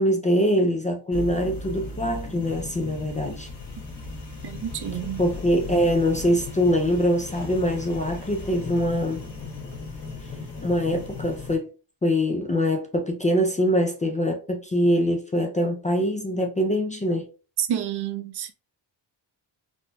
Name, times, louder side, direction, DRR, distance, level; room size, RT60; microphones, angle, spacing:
voice 1, 0.0-3.5 5.2-9.2 10.6-11.7 12.0-17.3, equal, 20° left, 0.3 m, -23 dB
sound 1, 1.1-11.5, left 3 dB, 65° left, 1.5 m, -37 dB
voice 2, 4.4-5.2 17.6-18.5, right 10 dB, 65° right, 0.6 m, -29 dB
4.2 x 2.6 x 2.2 m
wide cardioid pair, 155°, 43 cm